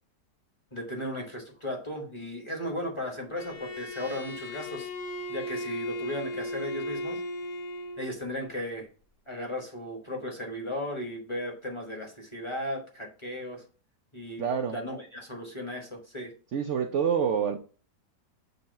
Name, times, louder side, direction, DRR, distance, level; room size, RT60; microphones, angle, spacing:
voice 1, 0.7-4.9 5.3-7.2 8.0-8.9 9.3-13.6 14.1-16.3, left 1 dB, 20° left, 1.2 m, -36 dB
Bowed string instrument, 3.4-8.2, left 1 dB, 70° left, 1.3 m, -36 dB
voice 2, 14.4-14.8 16.5-17.6, right 7 dB, 65° right, 0.7 m, -27 dB
6.7 x 2.9 x 5.2 m
omnidirectional pair, 1.8 m